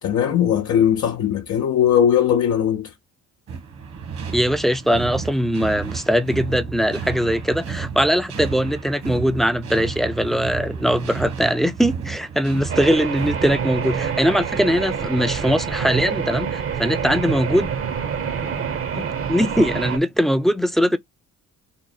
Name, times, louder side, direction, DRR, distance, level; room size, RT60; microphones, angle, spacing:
voice 1, 0.0-2.9, left 9 dB, 65° left, 0.7 m, -19 dB
sound 1, 3.5-14.2, right 6 dB, 70° right, 1.5 m, -32 dB
voice 2, 4.3-17.7 18.9-21.0, equal, ahead, 0.5 m, -21 dB
sound 2, 12.7-20.0, right 7 dB, 45° right, 0.8 m, -26 dB
3.7 x 2.0 x 4.0 m
cardioid pair, 90°, 30 cm